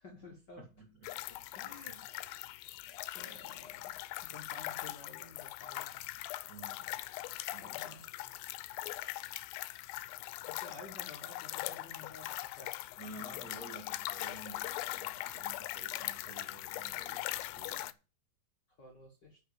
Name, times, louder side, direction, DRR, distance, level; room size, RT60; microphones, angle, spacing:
voice 1, 0.0-0.7 1.3-4.0 4.2-5.9 7.6-8.0 10.5-12.7 13.3-13.4 18.7-19.4, left 2 dB, 45° left, 1.5 m, -53 dB
voice 2, 0.6-1.5 6.5-6.9 7.5-8.3 13.0-17.9, right 2 dB, 55° right, 1.0 m, -52 dB
sound 1, 1.0-17.9, left 16 dB, 80° left, 2.3 m, -41 dB
9.1 x 6.3 x 7.1 m
omnidirectional pair, 4.1 m